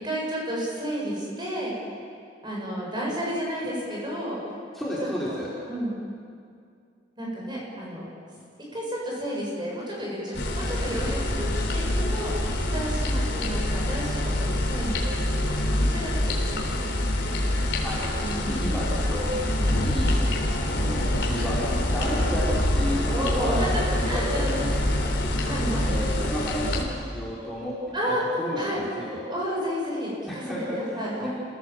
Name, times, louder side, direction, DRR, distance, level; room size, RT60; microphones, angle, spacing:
voice 1, 0.0-1.7 2.4-4.4 5.3-5.4 5.7-6.0 7.2-8.1 8.7-16.8 17.1-17.3 18.2-18.8 19.4-19.7 23.1-24.6 25.4-26.0 27.9-28.8 29.3-30.4 30.7-31.3, equal, 25° right, -3 dB, 7.8 m, -31 dB
voice 2, 4.7-5.5 17.8-18.0 18.5-20.1 20.6-23.7 24.0-24.7 25.0-25.1 25.4-29.2 30.3-31.3, equal, ahead, -8 dB, 4.1 m, -32 dB
sound 1, 10.3-26.8, left 1 dB, 75° left, 3.9 m, -26 dB
28.0 x 17.0 x 7.7 m, 2.3 s
head